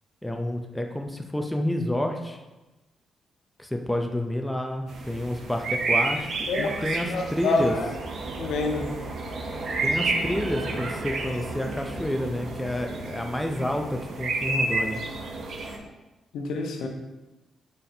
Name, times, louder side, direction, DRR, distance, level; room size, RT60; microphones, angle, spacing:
voice 1, 0.2-2.4 3.6-7.8 9.8-15.0, left 1 dB, 5° left, 3 dB, 0.3 m, -29 dB
sound 1, 4.9-15.8, right 3 dB, 55° right, 0.6 m, -30 dB
voice 2, 7.1-7.9 8.4-8.9 16.3-16.9, left 3 dB, 85° left, 2 dB, 0.7 m, -27 dB
4.1 x 3.2 x 4.0 m, 1.1 s
wide cardioid pair, 160°, 0 cm